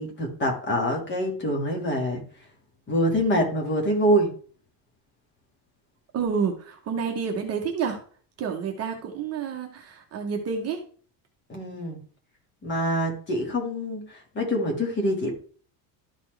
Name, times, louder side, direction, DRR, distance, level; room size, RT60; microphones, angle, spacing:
voice 1, 0.0-2.2 2.9-4.3 11.5-12.0 12.6-15.3, equal, 25° left, 1 dB, 1.8 m, -25 dB
voice 2, 6.1-8.0 8.4-10.8, right 6 dB, 35° right, 3 dB, 1.0 m, -29 dB
12.5 x 4.2 x 3.3 m, 0.43 s
cardioid pair, 175°, 44 cm